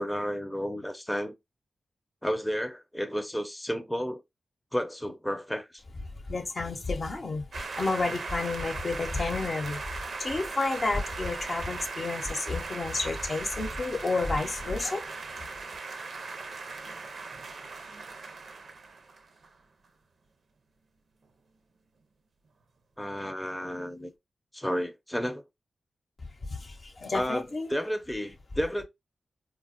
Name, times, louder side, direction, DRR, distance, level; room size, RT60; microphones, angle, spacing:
voice 1, 0.0-1.3 2.2-4.2 4.7-5.8 23.0-24.1 24.5-25.4 27.1-28.8, equal, 10° left, 0.5 m, -32 dB
voice 2, 6.2-15.1 26.5-27.7, left 3 dB, 55° left, 0.7 m, -31 dB
sound 1, 7.5-19.5, right 4 dB, 70° right, 0.5 m, -38 dB
4.4 x 2.0 x 2.4 m
cardioid pair, 50°, 0 cm